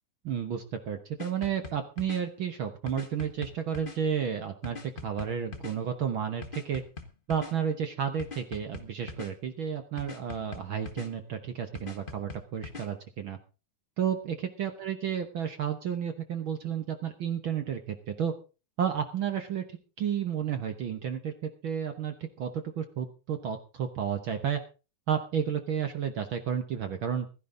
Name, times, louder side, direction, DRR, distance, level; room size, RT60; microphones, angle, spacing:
voice 1, 0.2-6.8 7.3-13.4 14.0-18.3 18.8-19.6 20.0-24.6 25.1-27.3, right 8 dB, 70° right, 7 dB, 1.2 m, -32 dB
sound 1, 1.2-2.2 2.9-4.0 4.6-5.7 6.4-7.5 8.2-9.3 10.0-11.1 11.7-12.9, left 4 dB, 35° left, 0.8 m, -42 dB
16.0 x 13.5 x 3.8 m, 0.33 s
omnidirectional pair, 3.8 m